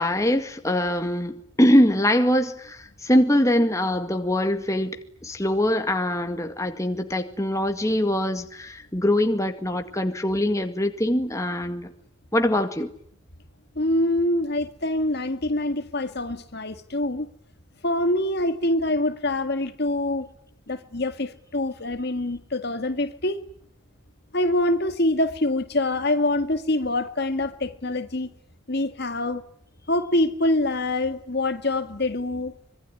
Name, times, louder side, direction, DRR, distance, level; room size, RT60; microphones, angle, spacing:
voice 1, 0.0-5.0 5.2-11.9 12.3-12.9, left 1 dB, 15° left, 2.1 m, -23 dB
voice 2, 13.8-17.3 17.8-20.3 20.7-23.4 24.3-28.3 28.7-29.5 29.9-32.5, left 1 dB, 55° left, 1.8 m, -25 dB
25.0 x 22.5 x 9.7 m
head